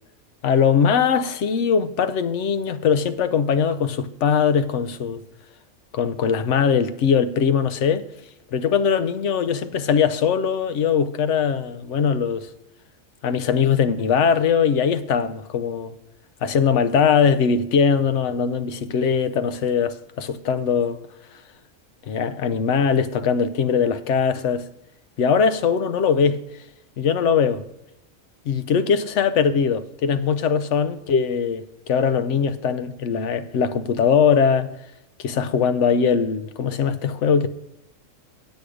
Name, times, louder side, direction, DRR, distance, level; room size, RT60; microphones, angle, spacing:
voice 1, 0.4-5.2 5.9-8.1 8.5-12.5 13.2-15.9 16.4-21.0 22.1-24.7 25.2-26.4 27.0-27.6 28.5-34.7 35.2-37.5, left 6 dB, 65° left, 0.9 m, -21 dB
8.5 x 8.2 x 4.9 m
omnidirectional pair, 1.4 m